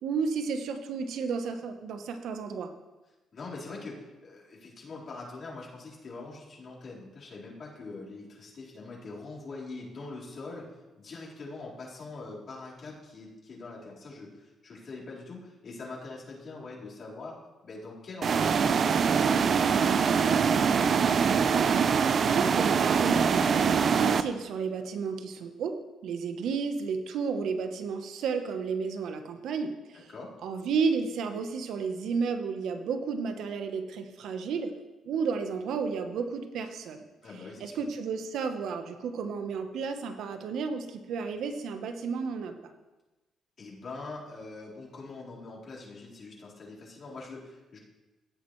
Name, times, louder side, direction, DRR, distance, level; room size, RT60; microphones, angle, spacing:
voice 1, 0.0-2.7 22.2-25.7 26.0-30.1 30.4-34.7 35.0-37.0 37.6-42.7, right 5 dB, 75° right, 7 dB, 1.0 m, -32 dB
voice 2, 3.3-10.6 11.0-17.4 17.6-21.0 30.1-30.3 37.2-37.8 43.6-47.8, left 3 dB, 50° left, -7 dB, 4.2 m, -43 dB
sound 1, 18.2-24.2, right 6 dB, 50° right, 0.5 m, -24 dB
16.0 x 8.4 x 3.2 m, 1.1 s
cardioid pair, 90°, 0 cm